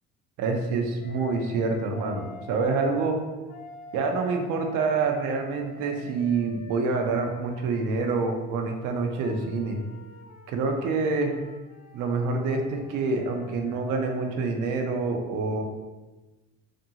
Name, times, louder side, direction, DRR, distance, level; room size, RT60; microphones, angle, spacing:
voice 1, 0.4-3.2 3.9-9.8 10.5-11.3 11.9-15.6, right 4 dB, 65° right, 3 dB, 0.6 m, -27 dB
Wind instrument woodwind instrument, 1.0-2.8 3.5-8.2 8.9-14.1, left 4 dB, 55° left, 0.5 m, -47 dB
2.6 x 2.5 x 2.8 m, 1.2 s
supercardioid pair, 75°, 34 cm